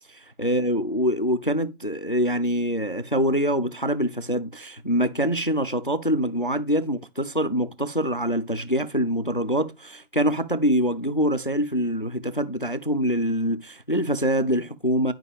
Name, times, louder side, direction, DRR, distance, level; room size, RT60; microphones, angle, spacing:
voice 1, 0.1-15.1, equal, 40° left, 0.5 m, -24 dB
11.0 x 5.4 x 3.4 m
hypercardioid pair, 180°, 43 cm